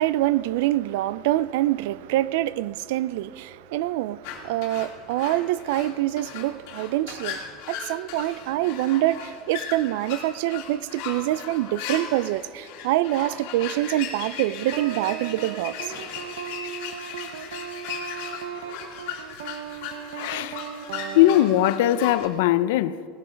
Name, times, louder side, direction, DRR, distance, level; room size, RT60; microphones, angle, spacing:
voice 1, 0.0-15.9, right 15 dB, 70° right, 0.4 m, -25 dB
sound 1, 4.2-22.3, left 8 dB, 60° left, 2.4 m, -37 dB
sound 2, 14.7-22.1, right 9 dB, 90° right, 0.9 m, -37 dB
voice 2, 20.1-20.6 21.1-23.1, left 14 dB, 80° left, 0.5 m, -20 dB
18.0 x 12.5 x 5.2 m
supercardioid pair, 170°, 0 cm